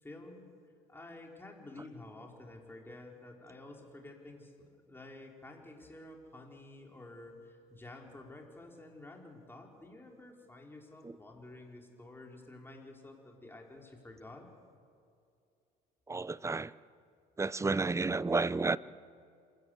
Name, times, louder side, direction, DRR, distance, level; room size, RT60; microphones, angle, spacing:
voice 1, 0.0-0.5 0.9-14.5, left 2 dB, 10° left, 4.5 m, -51 dB
voice 2, 16.1-16.7 17.4-18.8, right 3 dB, 15° right, 0.6 m, -31 dB
26.5 x 16.0 x 8.1 m
supercardioid pair, 90°, 18 cm